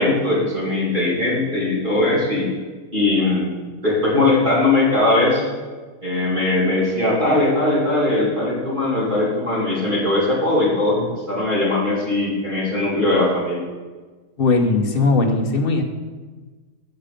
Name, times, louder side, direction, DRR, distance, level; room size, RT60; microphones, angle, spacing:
voice 1, 0.0-2.5 2.9-3.6 3.8-5.4 6.0-13.7, left 2 dB, 35° right, -7 dB, 2.6 m, -20 dB
voice 2, 14.4-15.8, left 3 dB, 45° left, 3 dB, 1.0 m, -18 dB
8.7 x 6.7 x 5.1 m, 1.4 s
omnidirectional pair, 1.5 m